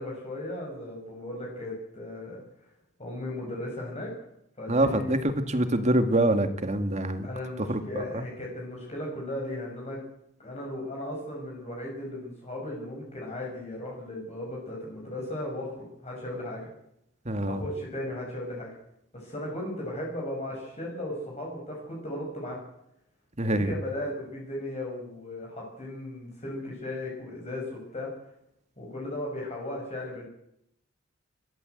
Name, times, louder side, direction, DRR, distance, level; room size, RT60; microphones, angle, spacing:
voice 1, 0.0-2.4 3.0-4.1 4.6-5.2 7.2-10.0 10.4-16.7 17.5-18.7 19.1-22.6 23.4-28.1 28.8-30.3, left 1 dB, 35° left, -2 dB, 5.7 m, -36 dB
voice 2, 4.7-7.3 7.7-8.0 17.3-17.6 23.4-23.7, right 1 dB, 35° right, 8 dB, 2.1 m, -25 dB
27.0 x 13.5 x 8.1 m, 0.79 s
head